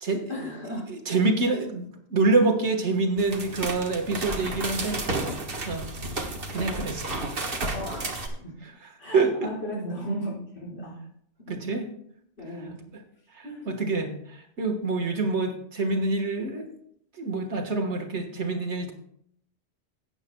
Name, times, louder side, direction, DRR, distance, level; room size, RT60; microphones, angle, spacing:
voice 1, 0.3-0.9 6.5-7.2 7.7-8.5 9.0-11.0 11.5-11.6 12.4-12.8 13.4-13.8, equal, 65° left, -6 dB, 5.3 m, -35 dB
voice 2, 0.9-5.9 6.5-7.0 9.1-9.5 11.5-11.9 13.3-16.7 17.2-18.9, right 3 dB, 75° right, 3 dB, 1.7 m, -26 dB
sound 1, 3.2-8.3, right 2 dB, 50° right, 1.5 m, -32 dB
17.5 x 8.9 x 2.2 m, 0.67 s
omnidirectional pair, 1.2 m